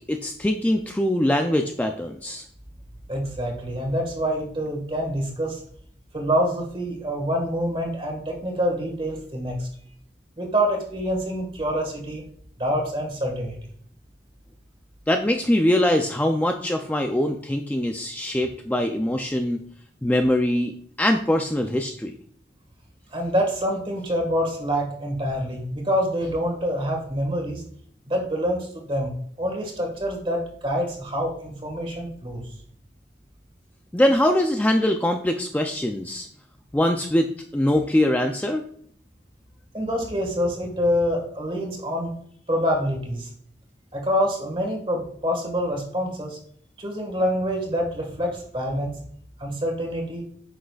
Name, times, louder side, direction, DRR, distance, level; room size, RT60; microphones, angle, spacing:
voice 1, 0.1-2.4 15.1-19.6 20.0-20.7 21.0-22.1 33.9-36.3 36.7-38.6, left 1 dB, 10° left, 4 dB, 0.3 m, -22 dB
voice 2, 3.1-5.6 6.1-9.7 10.4-12.2 12.6-13.6 23.1-27.6 28.1-29.1 29.4-32.5 39.7-42.1 42.5-43.3 43.9-46.4 46.8-48.9 49.4-50.2, equal, 30° right, 1 dB, 1.6 m, -26 dB
9.3 x 6.3 x 2.3 m, 0.63 s
head